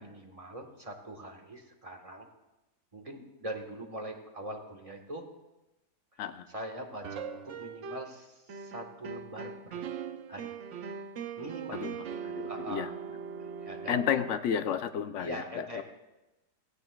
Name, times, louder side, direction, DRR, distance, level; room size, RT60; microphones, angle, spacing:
voice 1, 0.0-2.3 2.9-5.2 6.1-6.2 6.5-9.8 10.3-10.6 11.4-11.9 12.5-12.9 13.4-14.0 15.2-15.8, right 1 dB, 25° right, 2 dB, 1.2 m, -42 dB
sound 1, 7.0-8.2 8.5-14.4, right 6 dB, 60° right, 0.8 m, -40 dB
voice 2, 12.2-12.9 13.9-15.8, left 8 dB, 65° left, 10 dB, 0.8 m, -32 dB
16.5 x 16.5 x 2.3 m, 1.0 s
omnidirectional pair, 1.8 m